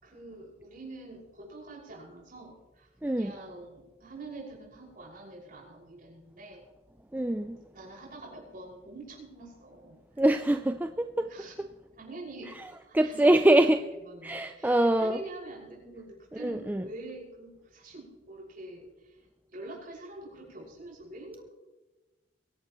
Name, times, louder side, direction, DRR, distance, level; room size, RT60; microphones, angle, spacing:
voice 1, 0.0-2.9 3.2-6.6 7.7-10.3 11.3-11.5 12.0-12.5 12.8-19.2 19.5-21.5, right 2 dB, 45° right, -3 dB, 5.8 m, -45 dB
voice 2, 3.0-3.3 7.1-7.6 10.2-11.3 12.9-13.8 14.2-15.2 16.4-16.8, right 1 dB, 10° right, 7 dB, 0.4 m, -24 dB
23.0 x 11.5 x 3.1 m, 1.1 s
head